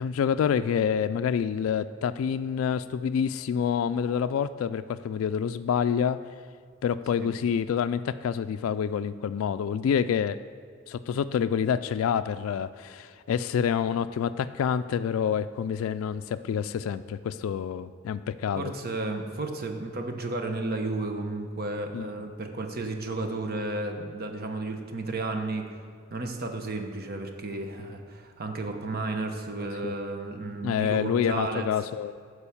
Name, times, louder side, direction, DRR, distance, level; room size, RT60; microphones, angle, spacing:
voice 1, 0.0-6.2 6.8-10.4 10.9-18.7 21.9-22.1 29.6-30.0 30.6-32.1, left 7 dB, 80° left, 11 dB, 0.3 m, -27 dB
voice 2, 18.6-25.7 26.1-31.6, right 2 dB, 50° right, 4 dB, 1.0 m, -33 dB
11.5 x 4.8 x 7.1 m, 2.1 s
head